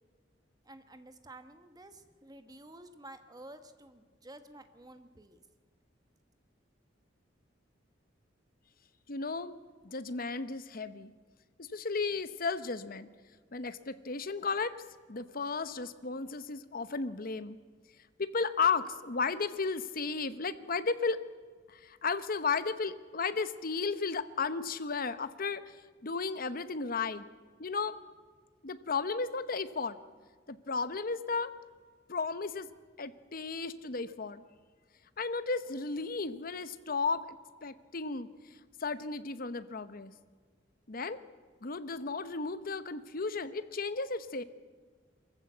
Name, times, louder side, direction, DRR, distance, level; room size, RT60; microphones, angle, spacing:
voice 1, 0.6-5.4, right 1 dB, 20° right, 9 dB, 1.3 m, -51 dB
voice 2, 9.1-9.5 9.8-11.1 11.6-13.1 13.5-14.7 15.1-17.6 18.2-21.2 21.7-25.6 26.0-27.3 27.6-28.0 28.6-30.0 30.5-31.5 32.1-32.7 33.0-34.4 35.2-37.4 37.6-38.3 38.8-40.1 40.9-41.2 41.6-44.4, left 4 dB, 50° left, 13 dB, 0.9 m, -34 dB
23.5 x 14.5 x 8.1 m, 1.5 s
head